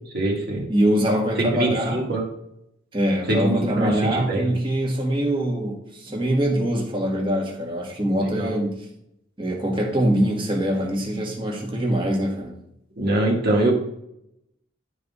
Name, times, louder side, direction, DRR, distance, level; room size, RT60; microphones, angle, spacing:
voice 1, 0.1-0.6 1.4-2.2 3.3-4.6 8.2-8.6 13.0-13.7, right 1 dB, 50° right, 2.2 m, -23 dB
voice 2, 0.7-2.0 2.9-8.8 9.4-12.6, right 1 dB, 25° right, 1.6 m, -23 dB
11.5 x 4.0 x 3.6 m
head